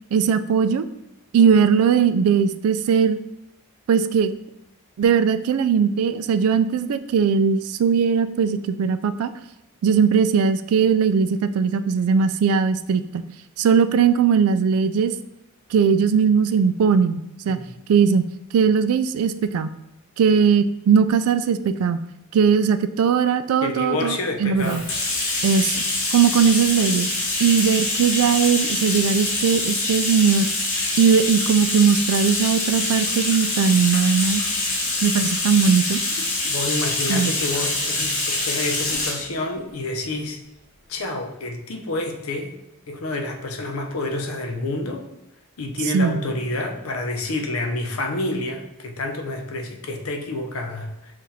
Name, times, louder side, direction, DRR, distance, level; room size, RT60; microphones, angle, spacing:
voice 1, 0.1-0.9 1.3-3.2 3.9-4.3 5.0-9.3 9.8-13.3 13.6-15.1 15.7-17.6 17.9-18.3 18.5-19.7 20.2-22.0 22.3-24.8 25.4-25.8 26.1-27.1 27.4-30.5 31.0-34.4 35.0-36.0 37.1-37.3 45.9-46.3, right 6 dB, 85° right, 12 dB, 0.3 m, -19 dB
voice 2, 23.6-24.9 36.4-40.4 40.9-42.5 42.9-45.1 45.6-51.1, left 2 dB, 90° left, 3 dB, 0.7 m, -28 dB
Bathtub (filling or washing), 24.6-39.2, left 2 dB, 65° left, 1.2 m, -25 dB
7.4 x 2.5 x 2.7 m, 0.89 s
head